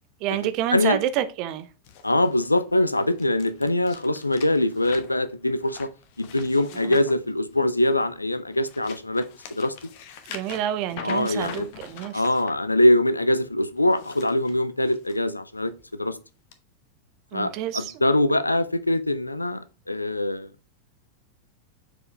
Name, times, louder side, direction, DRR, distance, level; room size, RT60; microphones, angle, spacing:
voice 1, 0.2-1.7 6.9-7.0 10.3-12.2 17.3-17.9, right 11 dB, 40° right, 0.8 m, -28 dB
sound 1, 1.8-8.0 8.4-12.5 13.8-15.2 15.6-15.9 16.5-16.6, left 7 dB, 50° left, 1.0 m, -43 dB
voice 2, 2.0-5.9 6.2-9.7 11.0-11.7 12.1-16.2 17.3-20.5, left 1 dB, 85° left, 0.5 m, -23 dB
6.2 x 4.8 x 3.2 m
figure-of-eight pair, 90°, 0 cm